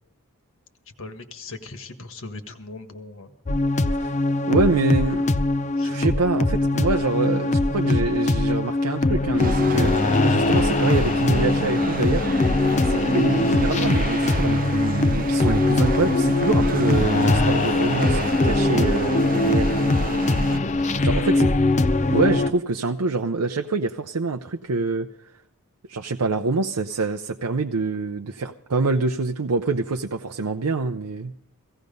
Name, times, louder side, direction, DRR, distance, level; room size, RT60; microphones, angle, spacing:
voice 1, 1.0-3.4 5.8-6.1 21.0-21.5, left 2 dB, 60° left, 7 dB, 1.6 m, -38 dB
sound 1, 3.5-22.5, left 2 dB, 30° left, 0.6 m, -21 dB
voice 2, 4.5-5.3 5.8-9.9 10.2-12.3 12.8-19.8 21.0-21.5 22.1-25.1 25.9-31.3, right 3 dB, 90° right, 5 dB, 0.7 m, -25 dB
sound 2, 9.4-20.6, right 4 dB, 40° right, 0.6 m, -33 dB
16.5 x 16.5 x 5.3 m, 0.73 s
head